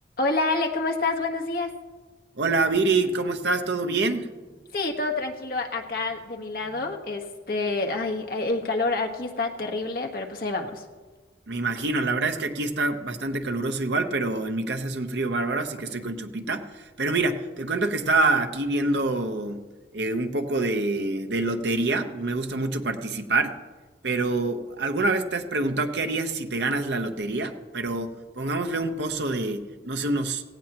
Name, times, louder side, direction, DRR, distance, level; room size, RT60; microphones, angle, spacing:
voice 1, 0.2-1.7 4.7-10.8, left 3 dB, 55° left, 2 dB, 1.4 m, -28 dB
voice 2, 2.4-4.3 11.5-19.6 19.9-23.5 24.0-30.4, right 3 dB, 75° right, 6 dB, 1.0 m, -26 dB
17.5 x 16.0 x 3.0 m, 1.3 s
head